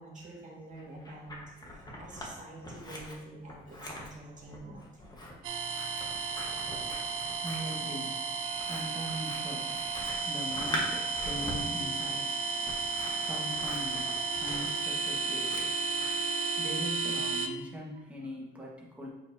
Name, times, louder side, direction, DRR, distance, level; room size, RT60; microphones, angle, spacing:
voice 1, 0.0-1.4 1.7-5.2 8.5-8.7 11.0-11.4 12.6-13.4 14.0-14.4 16.1-16.3, right 2 dB, 40° right, -3 dB, 2.1 m, -49 dB
Scissors, 0.8-2.3 2.6-16.3, equal, 20° left, 1.4 m, -42 dB
sound 1, 5.4-17.5, right 4 dB, 80° right, 0.6 m, -33 dB
voice 2, 6.8-8.3 8.5-9.8 10.2-12.4 13.1-15.8 16.6-19.1, equal, 5° right, -4 dB, 1.5 m, -41 dB
7.9 x 4.4 x 2.8 m, 1.1 s
cardioid pair, 100°, 20 cm